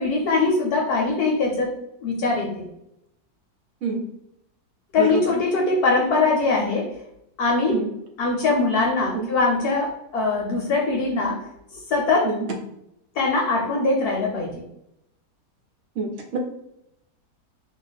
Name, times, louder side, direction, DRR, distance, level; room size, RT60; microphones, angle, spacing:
voice 1, 0.0-1.7 2.0-2.7 4.9-6.9 7.4-7.8 8.2-11.4 11.7-12.3 13.2-14.6, left 3 dB, 70° left, -1 dB, 1.1 m, -22 dB
voice 2, 5.0-5.3 7.7-7.9 9.1-9.3 12.2-12.5 16.0-16.4, right 4 dB, 60° right, 2 dB, 0.8 m, -27 dB
2.8 x 2.5 x 3.9 m, 0.80 s
omnidirectional pair, 1.9 m